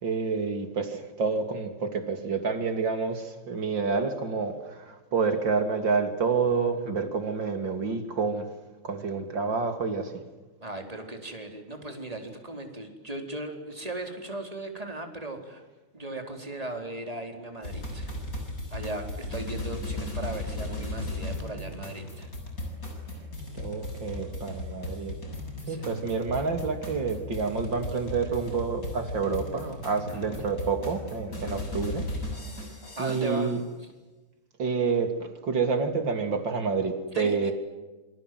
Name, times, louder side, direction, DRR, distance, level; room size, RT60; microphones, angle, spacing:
voice 1, 0.0-8.5 8.8-10.2 23.5-25.1 25.7-32.1 33.0-33.6 34.6-37.5, right 4 dB, 55° right, 7 dB, 3.6 m, -28 dB
voice 2, 10.6-15.6 15.9-18.1 18.7-22.3 25.6-25.8 30.1-30.4 33.0-33.9 37.1-37.5, right 2 dB, 15° right, 4 dB, 4.4 m, -37 dB
sound 1, 17.6-33.5, left 1 dB, 40° left, 7.7 m, -36 dB
28.0 x 26.5 x 7.8 m, 1.2 s
omnidirectional pair, 2.4 m